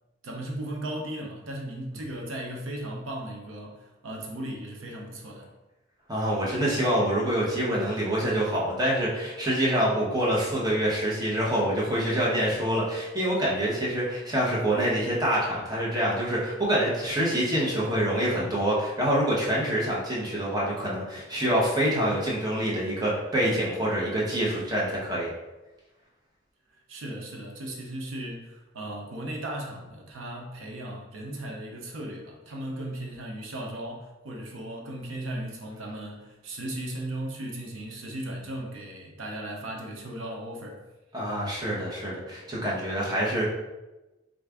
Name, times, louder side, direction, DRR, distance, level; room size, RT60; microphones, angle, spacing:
voice 1, 0.2-5.5 26.9-40.8, right 1 dB, 85° right, 0 dB, 0.6 m, -36 dB
voice 2, 6.1-25.3 41.1-43.4, right 1 dB, 20° right, -5 dB, 0.8 m, -26 dB
3.8 x 2.4 x 3.4 m, 1.1 s
head